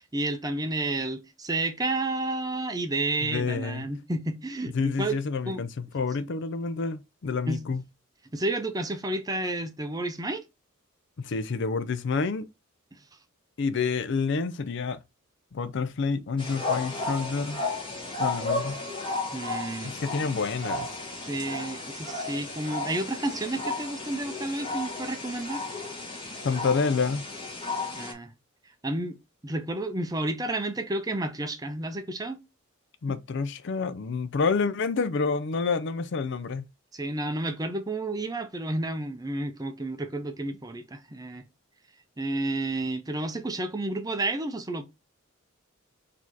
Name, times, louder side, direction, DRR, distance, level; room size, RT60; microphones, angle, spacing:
voice 1, 0.1-5.2 5.5-5.6 7.5-7.6 8.3-10.4 19.3-19.9 21.2-25.6 27.9-28.3 28.8-29.2 29.4-32.4 36.9-41.4 42.2-44.8, right 2 dB, 20° right, 0.6 m, -31 dB
voice 2, 3.2-3.9 4.7-7.8 11.2-12.5 13.6-15.0 15.5-17.6 18.2-18.7 19.8-20.9 26.4-27.3 33.0-36.7, left 4 dB, 60° left, 0.5 m, -28 dB
sound 1, 16.4-28.1, left 3 dB, 25° left, 1.5 m, -33 dB
4.1 x 2.8 x 4.6 m
head